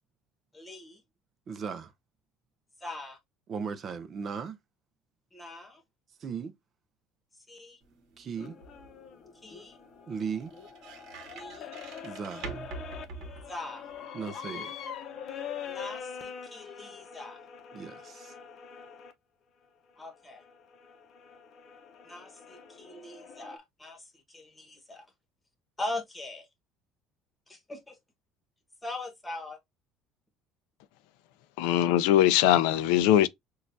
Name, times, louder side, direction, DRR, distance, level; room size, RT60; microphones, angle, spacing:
voice 1, 0.5-1.0 2.8-3.2 5.3-5.8 7.5-7.8 9.4-9.8 11.3-11.7 13.5-13.9 15.6-17.4 20.0-20.4 22.0-25.1 25.8-26.5 27.5-27.9 28.8-29.6, left 2 dB, 10° left, 1.2 m, -41 dB
voice 2, 1.5-1.9 3.5-4.6 6.2-6.5 8.2-8.6 10.1-10.5 12.0-12.5 14.1-14.7 17.7-18.3, right 6 dB, 30° right, 0.5 m, -36 dB
sound 1, 7.8-14.1, right 4 dB, 55° right, 1.3 m, -46 dB
sound 2, 8.4-19.1 19.9-23.6, left 7 dB, 40° left, 0.7 m, -44 dB
voice 3, 31.6-33.3, left 12 dB, 90° left, 0.4 m, -21 dB
6.3 x 2.4 x 2.6 m
cardioid pair, 160°, 0 cm